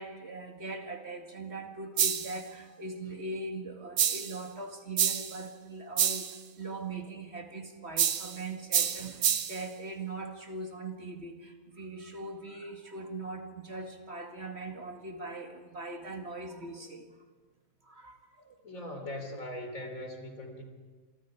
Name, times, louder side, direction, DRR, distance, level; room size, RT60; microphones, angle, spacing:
voice 1, 0.0-17.2 17.8-18.6, right 2 dB, 50° right, 4 dB, 2.3 m, -41 dB
sound 1, 2.0-2.4 4.0-4.4 5.0-5.4 6.0-6.4 8.0-8.4 8.7-9.6, right 8 dB, 80° right, 1.4 m, -28 dB
voice 2, 18.6-20.6, left 1 dB, 70° left, 5 dB, 3.9 m, -40 dB
27.5 x 24.5 x 4.8 m, 1.4 s
omnidirectional pair, 1.5 m